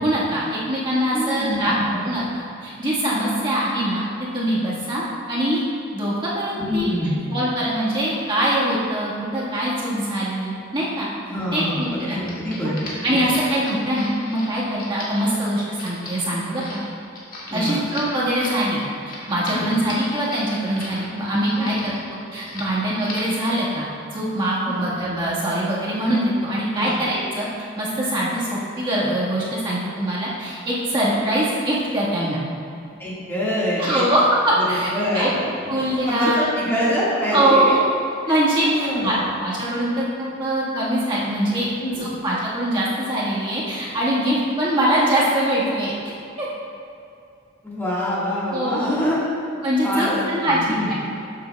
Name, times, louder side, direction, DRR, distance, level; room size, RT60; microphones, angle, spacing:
voice 1, 0.0-1.7 2.0-5.6 5.9-6.9 7.3-11.1 11.5-12.2 13.0-16.8 17.5-18.8 19.3-27.5 27.8-32.4 33.8-34.9 35.1-35.3 35.7-36.4 37.3-37.8 38.3-41.7 42.0-45.9 46.4-46.5 48.5-49.0 49.6-50.9, right 1 dB, 25° right, -8 dB, 1.6 m, -23 dB
voice 2, 1.1-2.0 6.5-7.4 11.3-13.2 17.5-17.8 19.5-19.7 21.6-21.7 24.7-24.9 26.7-27.0 31.2-31.3 33.0-34.0 34.6-35.4 35.6-35.8 36.1-37.8 38.3-38.4 38.7-39.2 41.8-42.1 47.6-49.2 49.8-50.9, left 1 dB, 10° left, -8 dB, 1.8 m, -25 dB
sound 1, 11.9-21.0 21.3-22.0 22.4-22.7 23.0-23.4, left 2 dB, 45° left, 1.8 m, -37 dB
13.0 x 7.4 x 2.3 m, 2.6 s
head